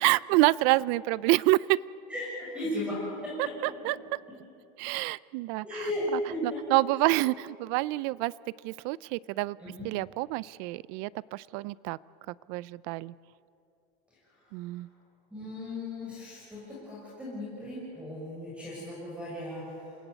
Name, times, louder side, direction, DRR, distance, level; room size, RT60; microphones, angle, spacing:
voice 1, 0.0-1.8 3.6-4.0 4.8-5.9 6.1-8.3 8.6-9.6 9.8-12.0 12.5-13.1 14.5-14.9, right 20 dB, 65° right, 21 dB, 0.5 m, -27 dB
voice 2, 2.1-3.5 5.6-6.6 9.6-9.9 14.5-14.6 15.3-20.0, left 1 dB, 5° right, -7 dB, 6.9 m, -36 dB
28.0 x 18.0 x 8.3 m, 2.7 s
cardioid pair, 150°, 21 cm